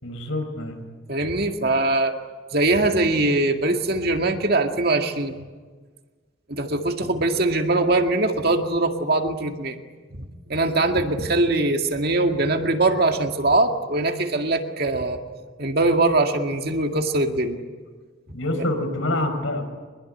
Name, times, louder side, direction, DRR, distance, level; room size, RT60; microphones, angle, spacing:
voice 1, 0.0-0.8 18.3-19.6, left 1 dB, 85° left, 5 dB, 5.2 m, -26 dB
voice 2, 1.1-2.2 2.5-5.4 6.5-9.8 10.1-15.2 15.6-17.6, right 2 dB, 50° right, 4 dB, 2.1 m, -22 dB
24.0 x 21.5 x 9.9 m, 1.4 s
head